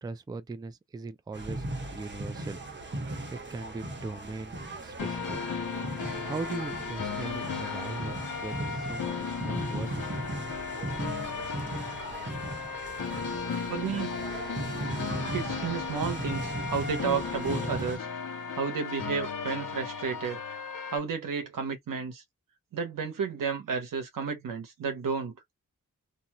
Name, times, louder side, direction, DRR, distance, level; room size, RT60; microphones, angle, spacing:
voice 1, 0.0-2.6 3.1-4.6 4.8-5.4 6.2-8.1 8.4-10.2, right 3 dB, 15° right, 0.3 m, -39 dB
sound 1, 1.3-18.0, right 1 dB, 35° right, 1.1 m, -37 dB
sound 2, 5.0-21.0, left 5 dB, 80° left, 1.0 m, -36 dB
voice 2, 13.7-14.1 15.3-18.1 18.5-20.4 20.9-22.2 22.7-25.3, right 6 dB, 90° right, 0.9 m, -32 dB
2.6 x 2.2 x 2.9 m
wide cardioid pair, 80°, 32 cm